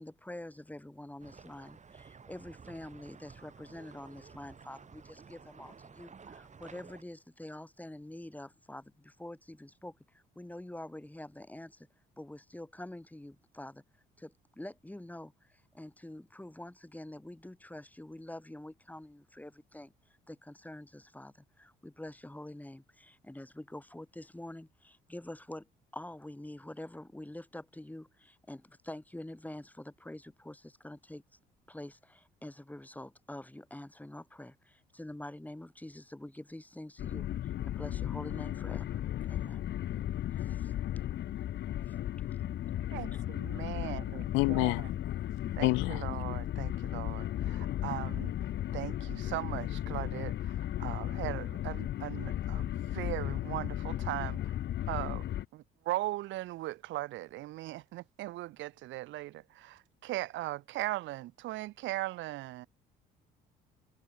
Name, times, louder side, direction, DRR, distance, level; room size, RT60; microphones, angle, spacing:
voice 1, 0.0-11.9 12.2-13.8 14.2-19.9 20.3-25.7 25.9-31.2 31.7-39.0 39.3-39.7 40.4-40.7 41.9-42.0, left 1 dB, 10° left, 4.2 m, -46 dB
sound 1, 1.2-7.0, right 5 dB, 40° right, 5.3 m, -53 dB
sound 2, 37.0-55.5, left 12 dB, 65° left, 2.1 m, -35 dB
voice 2, 42.9-44.2 44.5-44.7 45.5-48.3 48.7-54.5 54.9-55.2 55.5-62.7, right 17 dB, 75° right, 1.4 m, -39 dB
voice 3, 44.3-44.8 45.6-46.0, left 26 dB, 85° left, 0.8 m, -27 dB
supercardioid pair, 70°, 20 cm